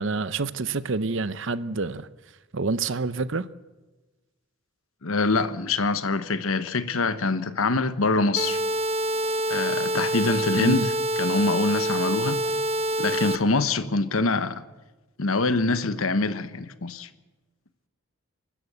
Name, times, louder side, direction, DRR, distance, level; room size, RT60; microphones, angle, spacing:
voice 1, 0.0-2.1 2.5-3.5 10.5-10.9, right 3 dB, 60° right, 0.7 m, -27 dB
voice 2, 5.0-8.6 9.5-10.9 11.2-12.4 13.0-14.6 15.2-17.1, left 3 dB, 75° left, 1.1 m, -24 dB
sound 1, 8.4-13.4, right 1 dB, 30° right, 1.1 m, -26 dB
24.0 x 13.5 x 8.1 m
head